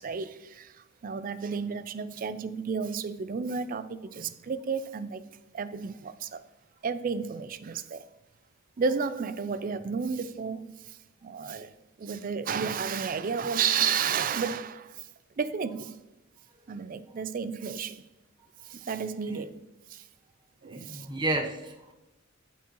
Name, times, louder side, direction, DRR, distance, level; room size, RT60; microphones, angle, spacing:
voice 1, 0.0-5.2 5.5-6.4 6.8-8.0 8.8-11.7 12.0-15.1 15.4-16.0 16.7-18.0 18.6-20.1 20.6-21.1, right 6 dB, 40° right, 0.4 m, -32 dB
voice 2, 20.7-21.9, right 2 dB, 20° right, 0.9 m, -31 dB
9.0 x 7.4 x 3.0 m
head